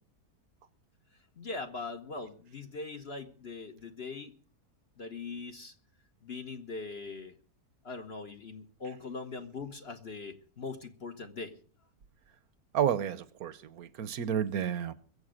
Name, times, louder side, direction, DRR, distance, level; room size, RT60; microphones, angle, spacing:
voice 1, 1.4-4.3 5.0-5.7 6.2-7.3 7.8-11.6, left 4 dB, 45° left, 5 dB, 1.3 m, -41 dB
voice 2, 12.7-14.9, right 9 dB, 65° right, 15 dB, 1.3 m, -31 dB
21.5 x 8.0 x 6.4 m, 0.42 s
omnidirectional pair, 1.7 m